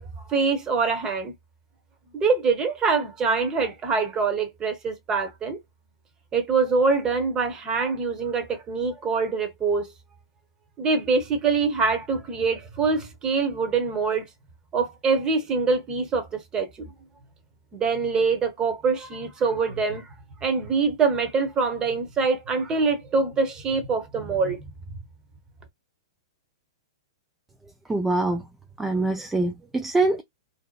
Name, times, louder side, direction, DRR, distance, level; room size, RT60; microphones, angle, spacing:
voice 1, 0.3-1.3 2.1-5.6 6.3-9.9 10.8-14.3 14.7-16.9 17.7-20.0 20.4-24.6, right 4 dB, 25° right, 0.9 m, -24 dB
voice 2, 27.9-28.4 28.8-30.2, right 2 dB, 10° right, 0.3 m, -24 dB
2.7 x 2.1 x 2.3 m
hypercardioid pair, 115°, 3 cm